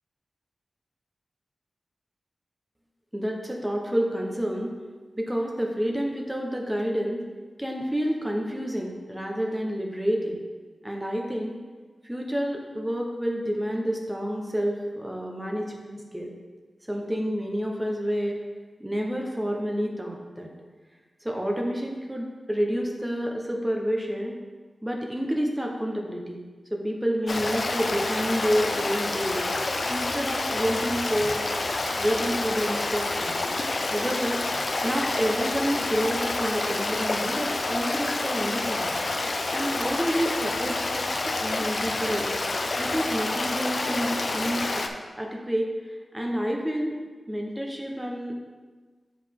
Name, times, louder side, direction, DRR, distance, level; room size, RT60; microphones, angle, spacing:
voice 1, 3.1-4.7 5.2-7.2 7.6-10.4 10.8-11.6 12.0-16.3 16.9-18.4 18.8-20.5 21.2-24.3 24.8-26.4 26.7-29.4 29.9-31.4 32.0-33.4 33.9-34.4 34.8-38.9 39.5-42.3 42.8-44.8 45.2-45.7 46.1-47.0 47.3-48.4, equal, 10° right, 0 dB, 1.0 m, -29 dB
Stream, 27.3-44.9, left 2 dB, 50° left, 0.5 m, -28 dB
7.9 x 4.8 x 3.7 m, 1.4 s
wide cardioid pair, 115°, 0 cm